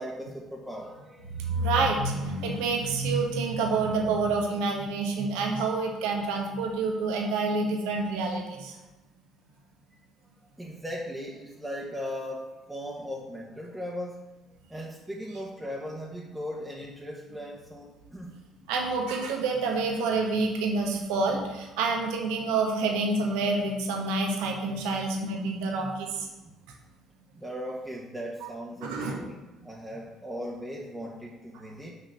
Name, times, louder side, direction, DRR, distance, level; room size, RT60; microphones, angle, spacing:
voice 1, 0.0-1.7 10.6-14.2 14.7-18.4 27.3-29.3 29.6-31.9, equal, 10° right, -4 dB, 1.4 m, -38 dB
voice 2, 1.3-8.8 18.7-26.3 28.8-29.2, right 3 dB, 70° right, 1 dB, 1.3 m, -28 dB
5.8 x 5.8 x 6.2 m, 1.1 s
figure-of-eight pair, 50°, 0 cm